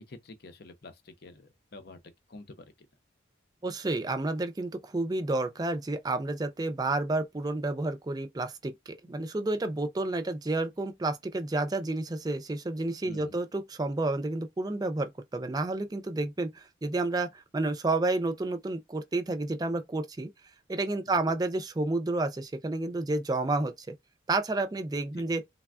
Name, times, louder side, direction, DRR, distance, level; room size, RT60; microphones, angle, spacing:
voice 1, 0.0-2.7 13.0-13.4 21.1-21.4 25.1-25.2, left 2 dB, 55° left, 0.6 m, -48 dB
voice 2, 3.6-20.3 20.7-23.9 24.3-25.4, right 2 dB, 20° right, 0.4 m, -30 dB
3.3 x 2.2 x 2.3 m
head